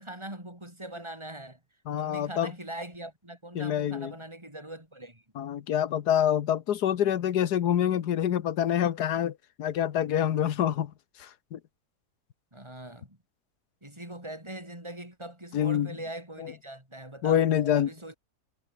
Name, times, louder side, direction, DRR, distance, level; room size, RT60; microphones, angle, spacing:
voice 1, 0.0-1.6 1.9-5.2 12.5-13.2 13.8-17.5 17.7-18.2, right 1 dB, 15° right, 6.3 m, -41 dB
voice 2, 1.9-2.5 3.5-4.1 5.3-10.9 11.2-11.6 15.5-16.0 16.4-16.5 17.2-18.1, left 10 dB, 80° left, 1.6 m, -26 dB
omnidirectional pair, 1.7 m